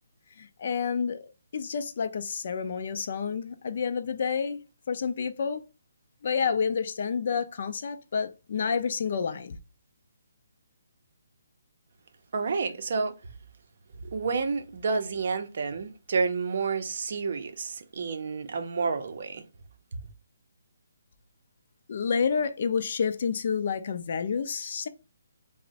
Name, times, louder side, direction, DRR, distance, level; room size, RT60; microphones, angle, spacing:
voice 1, 0.4-5.6 6.2-9.6 21.9-24.9, left 6 dB, 50° left, 0.4 m, -29 dB
voice 2, 12.3-13.1 14.0-19.4, right 4 dB, 55° right, 0.5 m, -30 dB
2.5 x 2.0 x 3.9 m
hypercardioid pair, 160°, 0 cm